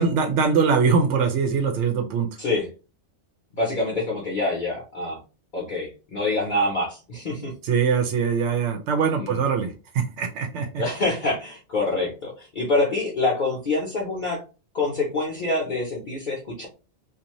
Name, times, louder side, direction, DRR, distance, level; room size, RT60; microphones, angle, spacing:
voice 1, 0.0-2.3 7.6-10.8, right 5 dB, 80° right, 4 dB, 0.9 m, -22 dB
voice 2, 3.6-5.2 5.5-7.5 9.1-9.4 10.8-14.4 14.7-16.7, left 2 dB, 50° left, -4 dB, 0.8 m, -26 dB
2.6 x 2.4 x 2.9 m, 0.33 s
omnidirectional pair, 1.2 m